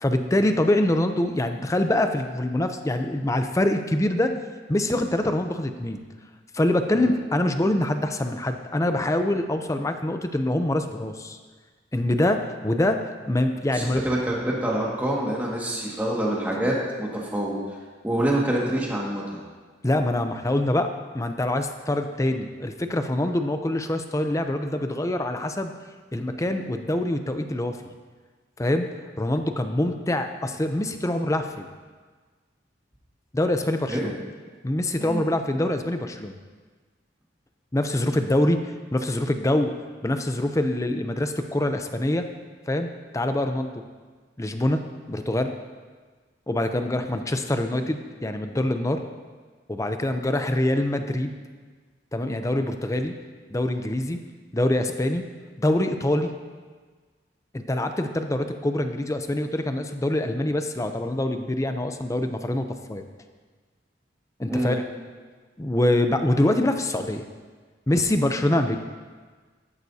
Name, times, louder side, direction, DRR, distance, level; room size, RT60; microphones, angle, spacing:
voice 1, 0.0-4.3 4.7-6.0 6.5-11.4 11.9-14.0 19.8-20.9 21.1-25.7 26.1-27.8 28.6-28.9 29.2-31.7 33.3-34.1 34.6-36.4 37.7-38.6 38.9-39.7 40.0-42.3 42.7-42.9 43.1-43.8 44.4-44.8 45.1-45.5 46.5-49.0 49.7-51.3 52.1-53.1 53.5-54.2 54.5-55.2 55.6-56.3 57.5-63.0 64.4-64.8 65.6-67.2 67.9-68.8, left 1 dB, 15° left, 7 dB, 0.5 m, -24 dB
voice 2, 13.7-17.6 18.0-19.2 33.9-34.1 35.0-35.2 64.5-64.8, right 1 dB, 10° right, -4 dB, 1.8 m, -26 dB
14.0 x 11.0 x 2.8 m, 1.5 s
head